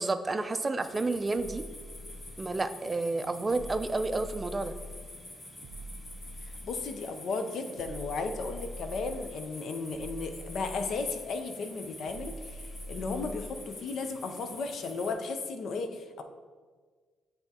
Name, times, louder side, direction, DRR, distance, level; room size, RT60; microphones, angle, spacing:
voice 1, 0.0-1.7 2.4-4.7, right 3 dB, 25° right, 10 dB, 0.4 m, -30 dB
sound 1, 0.8-15.1, left 1 dB, 30° left, 1.6 m, -48 dB
sound 2, 1.3-2.7 3.5-5.1 5.6-7.0 7.8-9.4 9.9-11.3 12.1-13.7, equal, 80° right, 0.5 m, -44 dB
voice 2, 6.4-16.2, left 4 dB, 65° left, 7 dB, 0.5 m, -35 dB
10.0 x 3.4 x 2.8 m, 1.5 s
cardioid pair, 90°, 0 cm